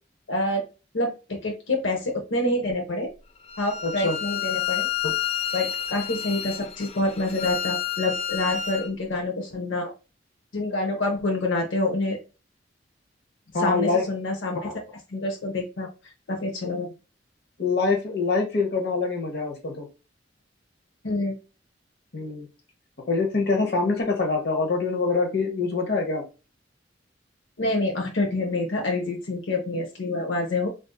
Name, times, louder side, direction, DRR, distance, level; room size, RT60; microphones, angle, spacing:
voice 1, 0.3-0.6 0.9-3.1 3.6-5.2 5.5-9.9 10.5-12.2 13.6-14.7 15.1-15.9 16.3-16.9 21.0-21.3 27.6-30.7, left 2 dB, 85° left, 1 dB, 0.7 m, -27 dB
Bowed string instrument, 3.5-8.9, left 9 dB, 35° left, 0.4 m, -30 dB
voice 2, 3.8-4.2 13.5-14.1 17.6-19.9 22.1-22.5 23.1-26.2, left 4 dB, 60° left, 2 dB, 0.9 m, -24 dB
3.8 x 2.5 x 2.3 m, 0.30 s
head